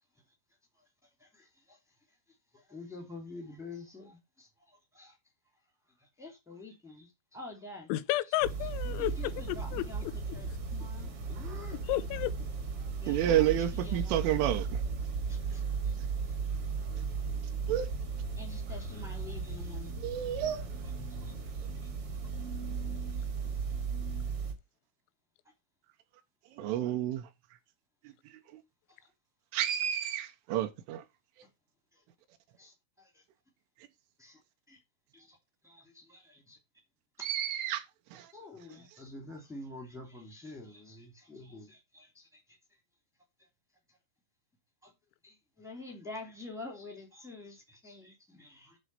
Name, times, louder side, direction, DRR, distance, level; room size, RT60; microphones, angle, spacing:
voice 1, 1.2-1.8 2.5-5.1 6.2-7.9 9.0-10.0 10.3-11.8 13.0-13.4 13.8-14.5 15.3-16.0 18.3-19.9 21.2-21.3 32.6-33.2 34.2-34.4 34.7-34.8 35.1-35.4 35.6-36.6 37.2-37.3 38.3-42.4 44.8-44.9 45.2-48.8, left 2 dB, 5° right, 0.5 m, -48 dB
voice 2, 7.9-9.9 11.9-12.3, left 16 dB, 90° left, 3.4 m, -32 dB
sound 1, 8.4-24.5, right 5 dB, 60° right, 1.4 m, -36 dB
voice 3, 13.1-14.8 17.7-17.9 20.0-20.6 26.6-27.3 29.5-31.0 37.2-37.8 38.1-38.3, right 11 dB, 80° right, 3.3 m, -30 dB
11.0 x 3.9 x 6.7 m
omnidirectional pair, 5.8 m